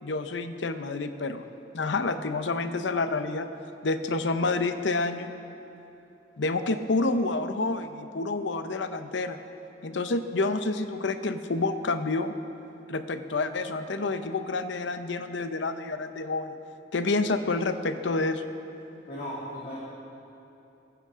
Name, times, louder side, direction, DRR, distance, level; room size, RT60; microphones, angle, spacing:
voice 1, 0.0-1.5 1.7-3.5 3.8-5.3 6.4-9.4 9.8-12.3 12.9-16.6 16.9-18.4, left 3 dB, 70° left, 9 dB, 0.7 m, -28 dB
voice 2, 19.1-19.7, left 1 dB, 45° left, -8 dB, 2.4 m, -36 dB
16.0 x 15.5 x 3.7 m, 2.9 s
head